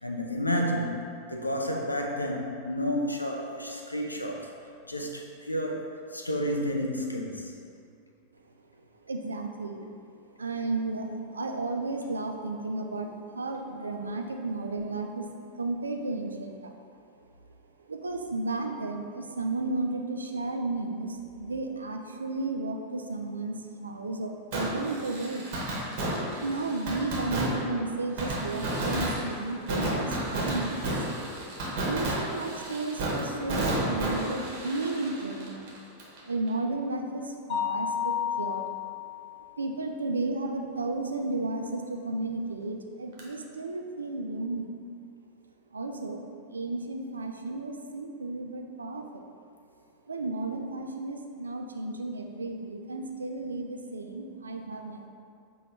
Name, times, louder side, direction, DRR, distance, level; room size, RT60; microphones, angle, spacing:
voice 1, 0.0-4.5 4.9-7.5, equal, 85° left, 1 dB, 0.3 m, -31 dB
voice 2, 9.1-9.9 10.4-15.3 15.6-16.7 17.9-25.5 26.4-30.8 31.8-35.7 36.3-38.6 39.6-44.7 45.7-46.2 46.5-49.2 50.1-55.1, right 2 dB, 75° right, 4 dB, 0.3 m, -33 dB
Fireworks, 24.5-36.2 36.5-36.6 43.2-43.3, right 1 dB, 45° right, 0.9 m, -32 dB
Mallet percussion, 37.5-39.3, left 9 dB, 25° left, 0.8 m, -31 dB
5.7 x 2.3 x 3.1 m, 2.4 s
figure-of-eight pair, 90°, 0 cm